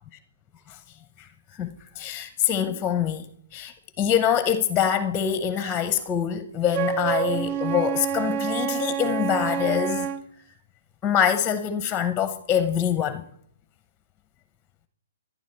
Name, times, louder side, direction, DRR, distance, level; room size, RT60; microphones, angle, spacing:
voice 1, 1.2-10.1 11.0-13.2, left 9 dB, 15° left, 0.7 m, -25 dB
Wind instrument woodwind instrument, 6.7-10.3, right 8 dB, 40° right, 0.5 m, -27 dB
13.0 x 11.0 x 4.4 m
hypercardioid pair, 145°, 0 cm